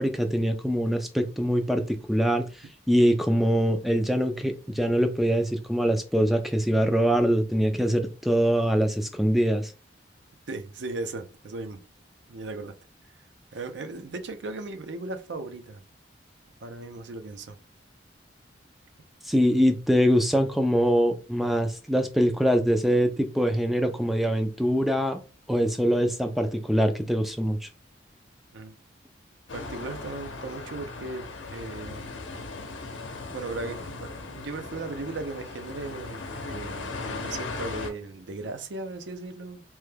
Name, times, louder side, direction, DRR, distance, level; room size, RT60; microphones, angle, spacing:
voice 1, 0.0-9.7 19.2-25.2 25.5-27.7, equal, ahead, 0.3 m, -23 dB
voice 2, 10.5-11.8 12.3-12.7 13.5-15.8 16.6-17.6 28.5-28.7 29.5-31.3 31.5-32.0 33.3-39.6, right 3 dB, 70° right, 0.5 m, -37 dB
sound 1, 29.5-37.9, left 3 dB, 85° left, 0.7 m, -38 dB
3.0 x 2.2 x 3.3 m
head